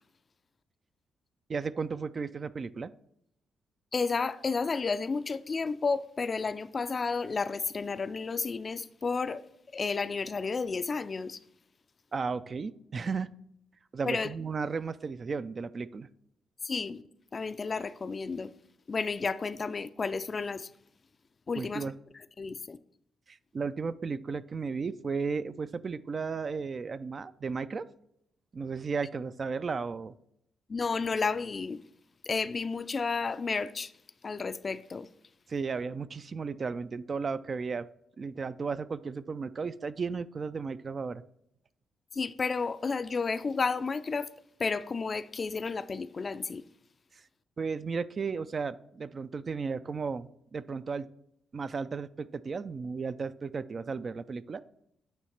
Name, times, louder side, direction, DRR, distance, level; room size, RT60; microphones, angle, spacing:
voice 1, 1.5-2.9 12.1-13.3 13.9-16.1 21.6-21.9 23.3-27.8 28.5-30.1 35.5-37.9 38.2-41.2 47.6-51.1 51.5-54.6, right 5 dB, 45° right, 0.3 m, -34 dB
voice 2, 3.9-9.4 9.7-11.4 14.0-14.3 16.6-17.0 17.3-18.5 18.9-20.7 21.5-22.8 30.7-31.8 32.3-33.9 34.2-35.1 42.1-44.3 44.6-46.6, left 4 dB, 45° left, 0.3 m, -32 dB
9.1 x 3.1 x 4.4 m
hypercardioid pair, 40°, 0 cm